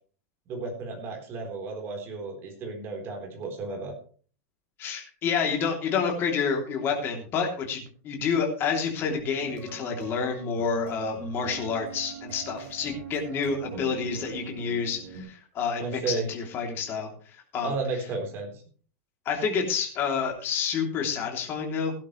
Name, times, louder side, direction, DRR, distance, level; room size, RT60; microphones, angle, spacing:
voice 1, 0.5-3.9 15.8-16.3 17.6-18.5, right 4 dB, 30° right, 2 dB, 4.1 m, -33 dB
voice 2, 4.8-17.7 19.2-21.9, left 6 dB, 25° left, 2 dB, 3.2 m, -29 dB
sound 1, 9.4-15.2, right 7 dB, 50° right, 5.5 m, -41 dB
16.5 x 11.5 x 3.3 m, 0.41 s
supercardioid pair, 165°, 8 cm